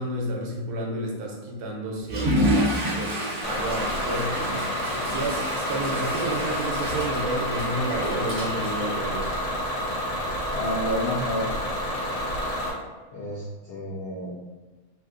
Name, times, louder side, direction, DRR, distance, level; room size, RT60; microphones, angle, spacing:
voice 1, 0.0-4.6 5.1-9.3, right 1 dB, 80° right, 0 dB, 1.2 m, -31 dB
Water / Toilet flush, 2.0-9.8, equal, 50° right, 0.7 m, -29 dB
Bus / Engine, 3.4-12.7, left 1 dB, 85° left, 1.4 m, -29 dB
voice 2, 10.5-11.5 13.1-14.3, left 1 dB, 70° left, -6 dB, 0.5 m, -30 dB
3.1 x 2.6 x 2.4 m, 1.3 s
omnidirectional pair, 1.7 m